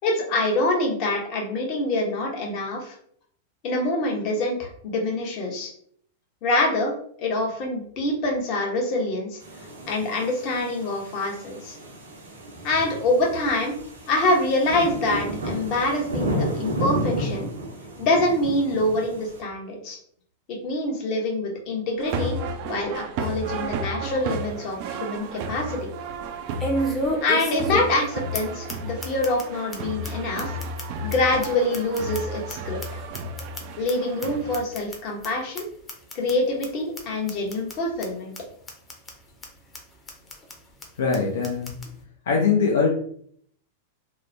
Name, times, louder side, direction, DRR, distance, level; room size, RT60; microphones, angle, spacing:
voice 1, 0.0-3.0 3.6-5.7 6.4-6.9 7.2-9.4 9.9-11.8 12.6-13.8 14.1-17.5 18.0-20.0 20.5-22.4 22.6-25.9 27.2-30.6 31.0-33.0 33.8-35.6 36.1-38.3, left 2 dB, 50° left, 1 dB, 0.9 m, -25 dB
sound 1, 9.4-19.4, equal, 85° right, 0.7 m, -32 dB
sound 2, 22.0-34.6, right 2 dB, 55° right, 0.3 m, -33 dB
sound 3, 24.2-24.3 24.8-24.9 26.6-28.1 28.3-28.4 28.7-28.8 29.0-29.4 29.7-29.8 30.0-30.1 30.4-32.5 32.8-33.9 34.2-34.3 34.5-35.0 35.2-35.3 35.6-35.7 35.9-36.3 36.6-36.7 37.0-37.1 37.3-37.7 38.0-38.1 38.3-38.4 38.7-39.1 39.4-39.5 39.7-39.8 40.1-40.5 40.8-40.9 41.1-41.2 41.4-41.9, equal, 20° left, 0.7 m, -30 dB
voice 2, 41.0-41.8 42.2-42.9, left 5 dB, 75° left, -1 dB, 0.5 m, -22 dB
2.9 x 2.0 x 2.6 m, 0.63 s
hypercardioid pair, 100°, 0 cm